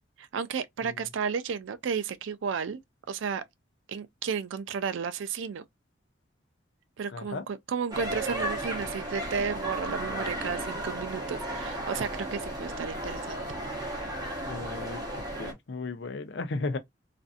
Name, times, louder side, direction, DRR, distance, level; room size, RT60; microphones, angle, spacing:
voice 1, 0.2-2.8 3.1-3.4 3.9-5.6 7.0-13.4 13.8-13.9, right 6 dB, 85° right, 0.4 m, -33 dB
voice 2, 7.1-7.5 14.4-16.8, left 3 dB, 65° left, 0.5 m, -35 dB
sound 1, 7.9-15.5, right 1 dB, 20° right, 0.9 m, -34 dB
2.5 x 2.4 x 2.4 m
head